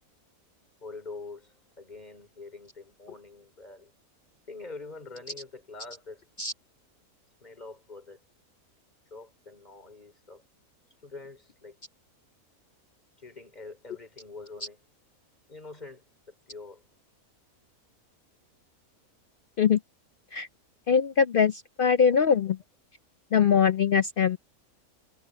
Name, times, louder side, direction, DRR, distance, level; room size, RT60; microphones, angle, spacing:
voice 1, 0.8-3.9 4.5-6.3 7.4-8.2 9.1-10.4 11.0-11.8 13.2-14.8 15.5-16.8, left 3 dB, 30° left, 4.0 m, -45 dB
voice 2, 20.9-22.6 23.3-24.4, left 7 dB, 65° left, 0.5 m, -22 dB
omnidirectional pair, 1.5 m